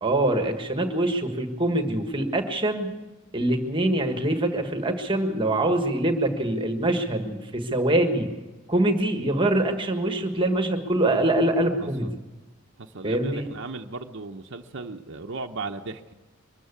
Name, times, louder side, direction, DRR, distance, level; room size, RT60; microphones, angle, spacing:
voice 1, 0.0-3.0 3.3-8.3 8.7-12.1 13.0-13.5, right 1 dB, 20° right, 5 dB, 1.6 m, -24 dB
voice 2, 11.8-12.1 12.8-16.1, right 3 dB, 55° right, 3 dB, 0.9 m, -36 dB
23.5 x 14.0 x 8.4 m, 1.2 s
head